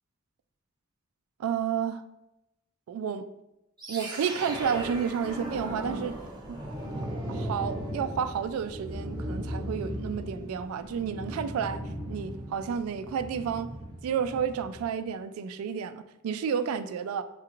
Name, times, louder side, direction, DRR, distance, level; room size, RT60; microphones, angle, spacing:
voice 1, 1.4-2.0 2.9-3.3 3.9-6.2 6.5-6.6 7.3-11.8 12.1-13.7 14.0-17.2, right 7 dB, 90° right, 11 dB, 0.3 m, -31 dB
sound 1, 3.8-14.9, right 1 dB, 20° right, 0.8 m, -37 dB
6.6 x 2.4 x 2.9 m, 0.90 s
head